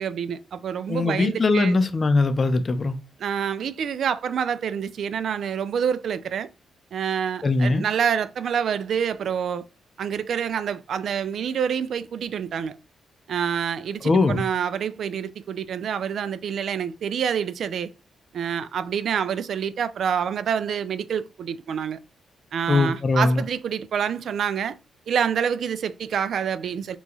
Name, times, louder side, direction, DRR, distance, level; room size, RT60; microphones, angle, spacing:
voice 1, 0.0-1.8 3.2-6.5 6.9-9.7 10.0-12.8 13.3-17.9 18.3-22.0 22.5-24.8 25.1-27.0, right 8 dB, 70° right, 0.3 m, -27 dB
voice 2, 0.9-3.0 7.4-7.8 14.0-14.4 22.7-23.4, left 3 dB, 40° left, 0.6 m, -21 dB
2.9 x 2.3 x 3.8 m
cardioid pair, 70°, 0 cm